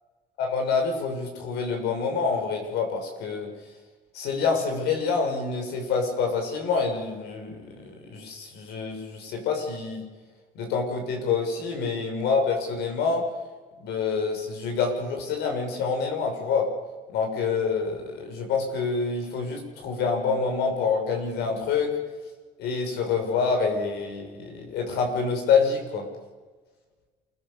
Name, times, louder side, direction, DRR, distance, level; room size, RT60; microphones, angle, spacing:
voice 1, 0.4-3.5 4.1-10.0 10.5-13.3 13.8-16.7 17.1-21.9 22.6-26.1, left 5 dB, 80° left, 3 dB, 6.7 m, -27 dB
28.0 x 17.5 x 6.9 m, 1.3 s
cardioid pair, 110°, 17 cm